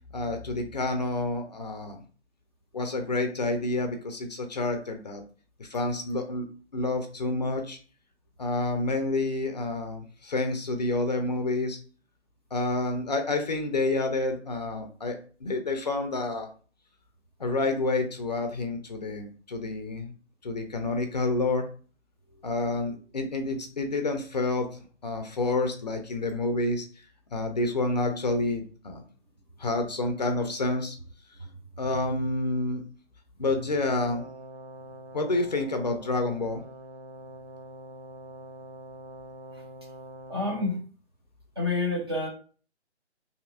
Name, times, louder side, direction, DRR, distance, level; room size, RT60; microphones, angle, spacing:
voice 1, 0.1-2.0 2.7-5.2 5.6-6.5 6.7-7.8 8.4-11.8 12.5-16.5 17.4-20.1 20.4-21.7 22.4-26.9 27.3-29.0 29.6-31.0 31.8-32.8 33.4-34.3 35.1-36.6, left 2 dB, 40° left, 5 dB, 0.5 m, -29 dB
Brass instrument, 33.9-40.8, right 2 dB, 65° right, 0.8 m, -45 dB
voice 2, 40.3-40.8 41.6-42.3, left 3 dB, 25° right, -2 dB, 0.4 m, -29 dB
3.3 x 2.7 x 2.4 m, 0.40 s
figure-of-eight pair, 145°, 35 cm